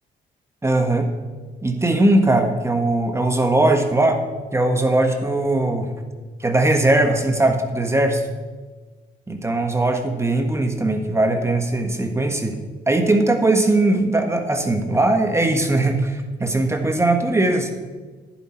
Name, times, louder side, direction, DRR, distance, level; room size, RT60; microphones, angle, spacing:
voice 1, 0.6-1.1 1.6-4.2 4.5-5.9 6.4-8.2 9.3-12.6 12.9-17.7, right 2 dB, 15° right, 5 dB, 1.3 m, -19 dB
11.5 x 10.0 x 4.4 m, 1.4 s
cardioid pair, 90°, 20 cm